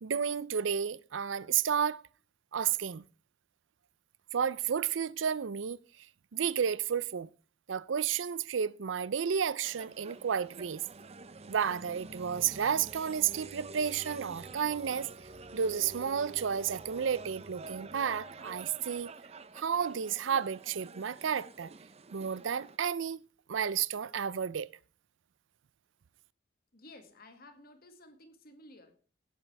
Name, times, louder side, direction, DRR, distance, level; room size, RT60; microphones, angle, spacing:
voice 1, 0.0-2.0 2.5-3.0 4.3-5.8 6.3-7.3 7.7-10.9 11.5-15.1 15.5-19.1 19.5-21.7 22.1-23.2 23.5-24.7, right 7 dB, 80° right, 0.5 m, -32 dB
sound 1, 9.6-22.8, right 3 dB, 35° right, 0.7 m, -48 dB
voice 2, 26.7-29.0, left 1 dB, 55° left, 2.0 m, -54 dB
17.0 x 8.8 x 3.4 m
head